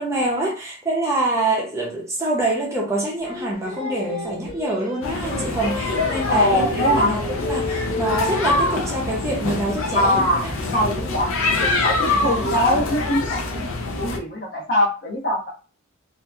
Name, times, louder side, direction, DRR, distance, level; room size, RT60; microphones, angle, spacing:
voice 1, 0.0-10.5 12.0-12.6 13.0-13.1, right 2 dB, 15° right, 0.5 m, -26 dB
Singing, 3.2-8.4, left 1 dB, 25° left, 1.0 m, -31 dB
sound 1, 5.0-14.2, left 3 dB, 75° left, 0.5 m, -25 dB
sound 2, 5.8-7.0 7.6-9.0 10.4-11.8 12.3-12.6, right 2 dB, 65° right, 0.7 m, -42 dB
voice 2, 6.3-7.2 9.9-10.5 10.7-11.3 11.6-15.5, left 1 dB, 50° left, 0.9 m, -22 dB
2.7 x 2.4 x 2.3 m
head